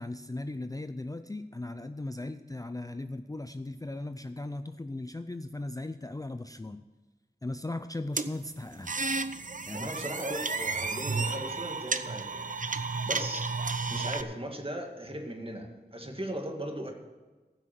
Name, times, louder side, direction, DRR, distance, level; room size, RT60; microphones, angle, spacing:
voice 1, 0.0-6.8 7.4-8.9 9.7-9.9, left 2 dB, 20° left, 10 dB, 0.5 m, -38 dB
sound 1, 8.2-14.2, right 4 dB, 50° right, 0.7 m, -32 dB
voice 2, 9.7-13.5 13.9-16.9, right 1 dB, 30° right, 2 dB, 2.2 m, -38 dB
15.0 x 6.3 x 7.6 m, 1.3 s
wide cardioid pair, 55°, 18 cm